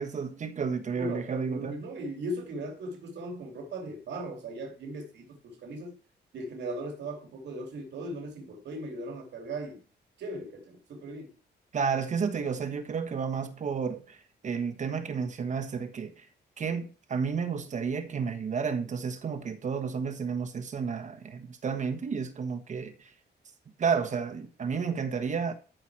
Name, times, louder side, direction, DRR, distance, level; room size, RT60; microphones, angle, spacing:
voice 1, 0.0-1.8 11.7-14.2 14.4-16.2 16.6-23.1 23.8-25.5, right 6 dB, 45° right, 1.5 m, -31 dB
voice 2, 0.9-6.0 6.3-9.8 10.2-11.3, right 1 dB, 75° right, 2.8 m, -38 dB
13.5 x 5.7 x 4.8 m
wide cardioid pair, 170°, 18 cm